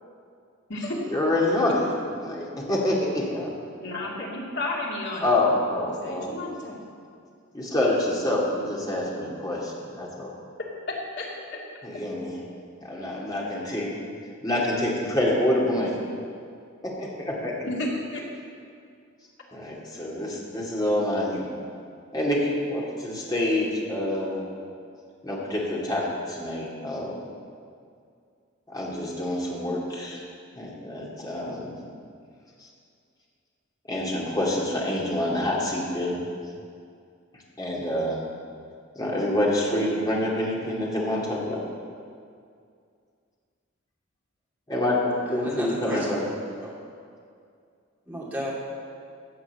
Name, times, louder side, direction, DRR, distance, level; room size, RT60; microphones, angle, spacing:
voice 1, 1.1-3.5 5.2-6.3 7.5-10.3 11.8-12.4 12.8-13.9 14.4-16.0 16.8-17.5 19.5-21.5 22.1-24.4 25.2-27.2 28.7-30.2 30.6-31.8 33.9-36.2 37.6-38.2 39.0-41.6 44.7-46.2, left 1 dB, 20° left, -4 dB, 2.3 m, -27 dB
voice 2, 3.8-5.3 5.9-6.8 11.2-11.3 17.6-18.2, left 2 dB, 60° left, -3 dB, 2.5 m, -32 dB
voice 3, 45.3-46.1 46.6-46.7 48.1-48.5, equal, 10° right, -6 dB, 2.9 m, -33 dB
16.0 x 5.9 x 7.2 m, 2.3 s
head